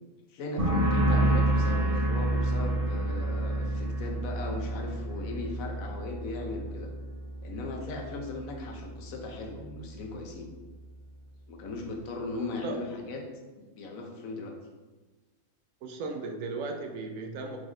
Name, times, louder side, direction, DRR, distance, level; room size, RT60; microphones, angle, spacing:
voice 1, 0.3-6.9 7.4-10.5 11.5-13.2 13.6-14.5, left 2 dB, 85° left, 2 dB, 1.2 m, -38 dB
sound 1, 0.6-8.0 8.3-8.9, right 1 dB, 45° right, 1.6 m, -28 dB
voice 2, 12.3-12.9 15.8-17.6, right 3 dB, 75° right, 4 dB, 1.0 m, -36 dB
4.9 x 4.0 x 2.4 m, 1.2 s
omnidirectional pair, 1.4 m